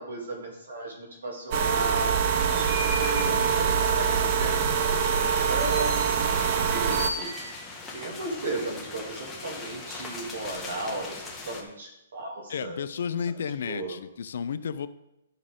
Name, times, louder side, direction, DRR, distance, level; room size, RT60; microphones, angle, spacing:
voice 1, 0.0-4.6 5.4-7.3 7.9-12.8 13.6-13.9, right 2 dB, 80° right, 1 dB, 2.7 m, -35 dB
sound 1, 1.5-7.1, right 6 dB, 35° right, 0.7 m, -24 dB
sound 2, 2.3-11.6, left 2 dB, 5° left, 1.2 m, -38 dB
voice 2, 12.5-14.9, left 7 dB, 65° left, 13 dB, 0.6 m, -32 dB
11.0 x 6.3 x 3.7 m, 0.87 s
hypercardioid pair, 155°, 0 cm